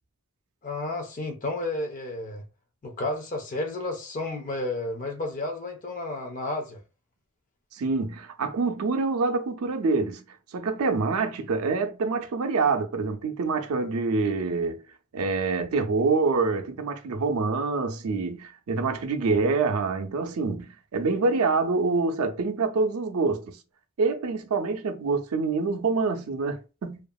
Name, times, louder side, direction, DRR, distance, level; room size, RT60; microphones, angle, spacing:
voice 1, 0.6-2.4 2.8-6.8, left 2 dB, 40° left, 0.4 m, -32 dB
voice 2, 7.7-10.2 10.5-14.8 15.1-23.6 24.0-27.0, right 4 dB, 85° right, 0.5 m, -26 dB
2.7 x 2.4 x 2.3 m
head